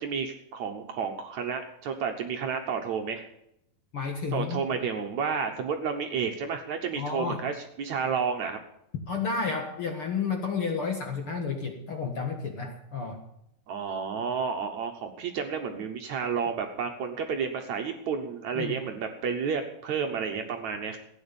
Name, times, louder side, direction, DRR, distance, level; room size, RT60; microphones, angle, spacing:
voice 1, 0.0-3.2 4.3-7.5 7.8-8.6 13.7-21.0, right 6 dB, 65° right, 4 dB, 2.1 m, -31 dB
voice 2, 3.9-4.6 7.0-7.4 9.1-13.2 18.5-18.7, left 5 dB, 45° left, 3 dB, 2.0 m, -31 dB
15.5 x 9.7 x 7.0 m, 0.78 s
omnidirectional pair, 4.2 m